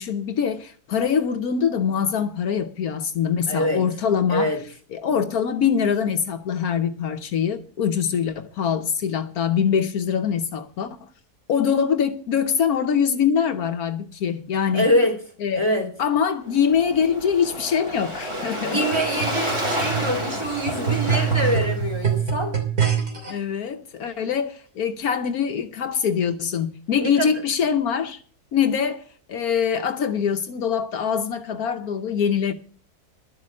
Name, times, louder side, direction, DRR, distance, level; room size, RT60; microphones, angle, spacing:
voice 1, 0.0-4.5 4.9-11.0 11.5-14.9 15.4-15.6 16.0-18.8 23.3-28.2 28.5-32.5, left 7 dB, 70° left, 1.3 m, -23 dB
voice 2, 3.5-3.8 4.3-4.6 14.7-15.2 15.6-15.9 18.5-22.6 27.0-27.3, equal, 15° right, 3.6 m, -24 dB
Waves surf, 16.5-22.2, equal, 50° right, 4.1 m, -30 dB
sound 1, 18.9-23.3 24.1-24.2, right 8 dB, 70° right, 3.6 m, -25 dB
11.5 x 7.6 x 7.4 m
omnidirectional pair, 1.6 m